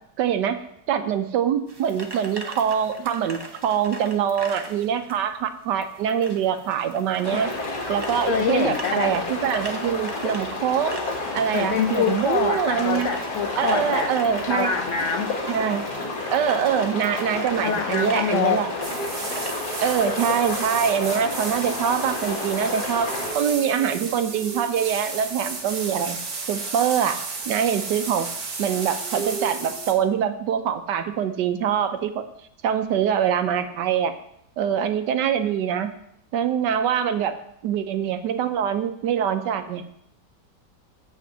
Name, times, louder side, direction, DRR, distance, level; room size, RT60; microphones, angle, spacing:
voice 1, 0.2-0.6 0.9-7.5 7.9-11.0 11.3-13.1 13.6-14.8 15.5-15.8 16.3-18.7 19.8-26.2 26.5-27.2 27.5-28.3 28.6-32.2 32.6-34.1 34.6-35.9 36.3-37.4 37.6-40.1, right 8 dB, 75° right, 9 dB, 1.3 m, -24 dB
sound 1, 1.7-19.9, right 2 dB, 35° right, 0.3 m, -42 dB
sound 2, 7.2-23.3, left 3 dB, 60° left, 2.2 m, -30 dB
voice 2, 8.3-9.1 11.5-14.1 14.5-15.3 17.6-18.7, left 7 dB, 90° left, 7 dB, 0.6 m, -25 dB
sound 3, 18.8-29.9, right 4 dB, 60° right, 1.8 m, -33 dB
8.5 x 4.5 x 7.2 m, 0.74 s
omnidirectional pair, 1.9 m